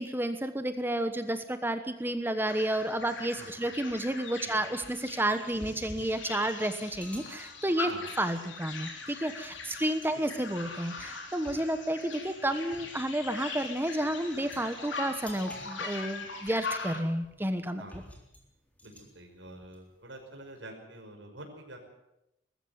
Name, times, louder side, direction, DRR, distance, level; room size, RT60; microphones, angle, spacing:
voice 1, 0.0-7.9 8.2-17.8, right 1 dB, 10° right, 9 dB, 1.2 m, -31 dB
sound 1, 1.9-2.2 2.6-2.7 3.4-20.6, equal, 10° left, 3.8 m, -53 dB
sound 2, 2.5-17.0, left 4 dB, 75° left, 3.8 m, -41 dB
voice 2, 18.8-21.8, right 1 dB, 75° right, 2 dB, 5.5 m, -47 dB
20.0 x 14.5 x 9.3 m, 0.88 s
head